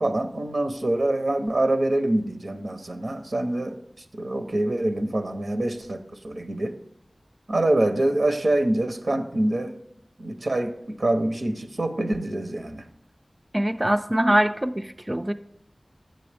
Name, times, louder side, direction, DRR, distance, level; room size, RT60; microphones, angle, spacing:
voice 1, 0.0-3.8 4.1-6.8 7.5-9.8 10.2-12.8, right 1 dB, 80° right, 6 dB, 0.7 m, -25 dB
voice 2, 13.5-15.3, right 1 dB, 25° right, 8 dB, 0.3 m, -23 dB
7.6 x 6.8 x 3.4 m, 0.76 s
wide cardioid pair, 45°, 0 cm